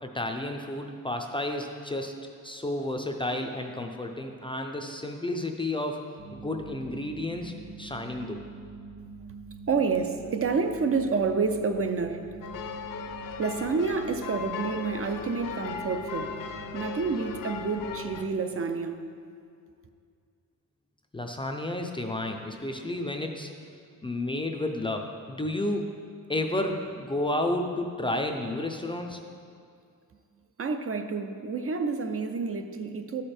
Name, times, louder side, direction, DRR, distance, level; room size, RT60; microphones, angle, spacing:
voice 1, 0.0-8.4 21.1-23.5 24.0-25.9 26.3-29.2, left 1 dB, 15° left, 3 dB, 0.4 m, -31 dB
sound 1, 6.2-18.1, right 4 dB, 70° right, 1.0 m, -45 dB
voice 2, 9.7-12.3 13.4-16.3 16.7-19.0 30.6-33.2, right 4 dB, 40° right, 7 dB, 0.5 m, -29 dB
sound 2, 12.4-18.2, left 6 dB, 70° left, 0.7 m, -37 dB
12.5 x 5.0 x 4.3 m, 2.3 s
wide cardioid pair, 140°, 34 cm